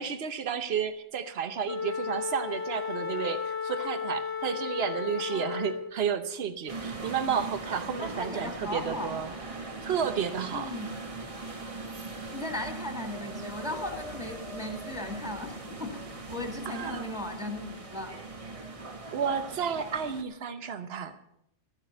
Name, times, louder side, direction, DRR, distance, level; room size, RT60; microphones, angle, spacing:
voice 1, 0.0-9.3 9.8-10.7 16.6-17.1 19.1-21.2, right 7 dB, 60° right, 10 dB, 1.2 m, -32 dB
Wind instrument woodwind instrument, 1.6-6.0, left 6 dB, 30° left, 1.0 m, -34 dB
sound 1, 6.7-20.2, right 2 dB, 30° right, 1.2 m, -40 dB
voice 2, 8.0-9.1 10.5-10.9 12.1-18.1, left 1 dB, 5° right, 2 dB, 2.3 m, -37 dB
14.5 x 7.2 x 8.1 m, 0.77 s
omnidirectional pair, 1.2 m